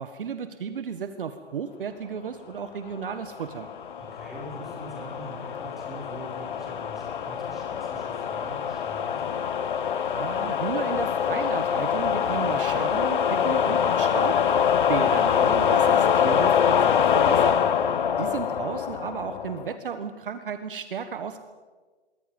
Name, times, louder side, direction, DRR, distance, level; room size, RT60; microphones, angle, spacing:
voice 1, 0.0-3.7 10.1-14.4 14.9-17.6 18.2-21.4, right 7 dB, 50° right, 9 dB, 1.4 m, -33 dB
sound 1, 3.3-19.7, left 8 dB, 45° left, 1.1 m, -24 dB
voice 2, 4.0-9.4 17.6-18.1, equal, ahead, -6 dB, 5.5 m, -43 dB
28.0 x 23.5 x 5.3 m, 1.4 s
hypercardioid pair, 175°, 34 cm